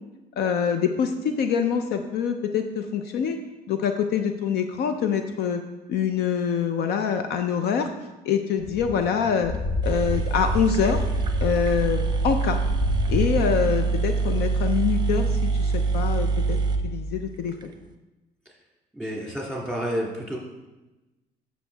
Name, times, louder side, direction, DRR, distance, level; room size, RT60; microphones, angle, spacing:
voice 1, 0.4-3.4 3.7-5.6 5.9-7.9 8.2-9.5 9.8-11.0 11.4-12.6 13.1-16.6 16.8-17.5, left 7 dB, 70° left, 7 dB, 0.6 m, -25 dB
sound 1, 8.6-13.2, left 3 dB, 55° left, 0.9 m, -30 dB
sound 2, 9.5-9.6 9.8-17.7, right 4 dB, 25° right, 0.7 m, -25 dB
voice 2, 18.9-20.4, equal, 5° left, -3 dB, 2.4 m, -30 dB
8.0 x 6.3 x 3.4 m, 1.1 s
cardioid pair, 110°, 17 cm